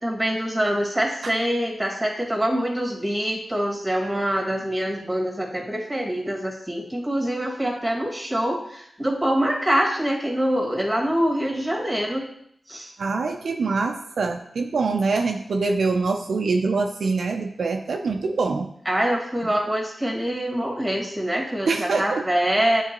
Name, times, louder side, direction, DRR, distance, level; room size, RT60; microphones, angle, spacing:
voice 1, 0.0-12.2 12.7-12.9 18.9-22.8, equal, 15° right, 0 dB, 1.8 m, -25 dB
voice 2, 13.0-18.7 21.7-22.2, right 4 dB, 75° right, 4 dB, 0.5 m, -24 dB
8.3 x 3.8 x 3.0 m, 0.69 s
cardioid pair, 55°, 0 cm